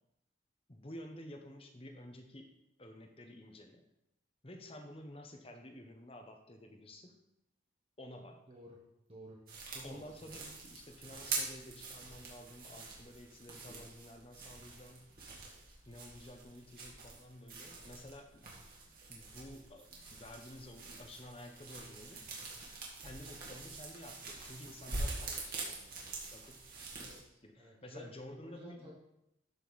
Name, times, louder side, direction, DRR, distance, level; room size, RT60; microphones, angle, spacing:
voice 1, 0.7-2.5 2.8-3.8 4.4-7.1 8.0-8.4 9.8-15.0 15.9-18.4 18.9-22.2 23.0-26.6 27.4-28.9, left 1 dB, 30° left, 4 dB, 1.0 m, -51 dB
sound 1, 9.5-27.2, right 3 dB, 45° right, 2.2 m, -45 dB
voice 2, 9.7-10.4 27.0-28.1 28.4-28.9, equal, 30° right, -3 dB, 1.5 m, -53 dB
12.5 x 5.2 x 4.1 m, 0.85 s
head